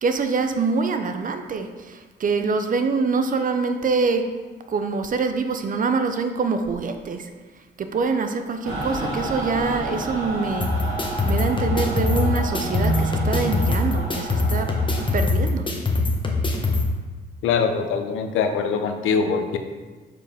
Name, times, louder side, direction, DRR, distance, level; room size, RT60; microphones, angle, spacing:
voice 1, 0.0-4.3 4.7-7.3 7.8-10.7 11.2-14.7 15.1-15.7, right 4 dB, 45° right, 7 dB, 0.6 m, -25 dB
Mechanical fan, 8.6-15.1, right 2 dB, 85° right, 2.0 m, -30 dB
sound 1, 10.6-16.8, left 3 dB, 25° left, 1.0 m, -23 dB
voice 2, 17.4-19.6, left 5 dB, 85° left, 7 dB, 0.7 m, -23 dB
6.9 x 4.8 x 3.6 m, 1.4 s
cardioid pair, 90°, 20 cm